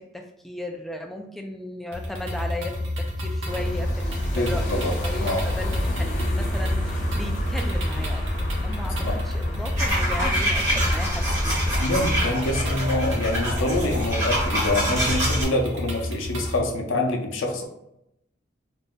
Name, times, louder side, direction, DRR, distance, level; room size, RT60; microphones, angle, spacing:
voice 1, 0.0-11.9, left 1 dB, ahead, 2 dB, 0.3 m, -36 dB
sound 1, 1.9-16.6, left 1 dB, 80° right, 0.7 m, -30 dB
sound 2, 3.4-12.2, equal, 40° left, 0.7 m, -28 dB
voice 2, 4.1-4.9 5.2-5.4 9.0-9.1 11.8-17.6, left 1 dB, 85° left, 2 dB, 0.6 m, -26 dB
sound 3, 9.8-15.4, equal, 20° right, 1.1 m, -26 dB
2.5 x 2.1 x 3.6 m, 0.83 s
head